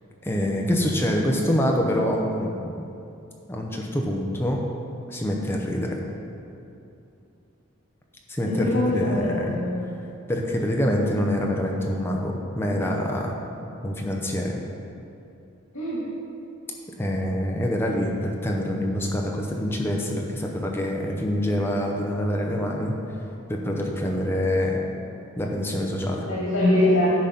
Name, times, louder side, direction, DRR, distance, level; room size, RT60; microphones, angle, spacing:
voice 1, 0.2-2.8 3.5-4.6 5.1-6.0 8.3-9.5 10.3-13.4 13.8-14.6 17.0-22.9 23.5-24.8 25.4-26.3, equal, 10° left, 0 dB, 0.7 m, -25 dB
voice 2, 8.5-9.9 15.7-16.0 26.2-27.1, left 1 dB, 90° left, -7 dB, 1.9 m, -23 dB
10.5 x 4.0 x 5.8 m, 2.7 s
head